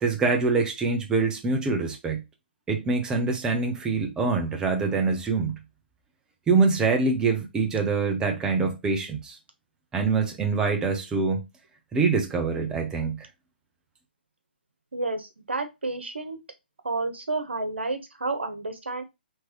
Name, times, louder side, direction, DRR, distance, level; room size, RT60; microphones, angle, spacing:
voice 1, 0.0-2.2 2.7-5.6 6.5-9.4 9.9-11.4 11.9-13.2, right 4 dB, 10° right, 0.9 m, -24 dB
voice 2, 14.9-16.4 16.8-19.0, right 3 dB, 85° right, 1.1 m, -30 dB
4.6 x 3.1 x 3.1 m
hypercardioid pair, 135°, 6 cm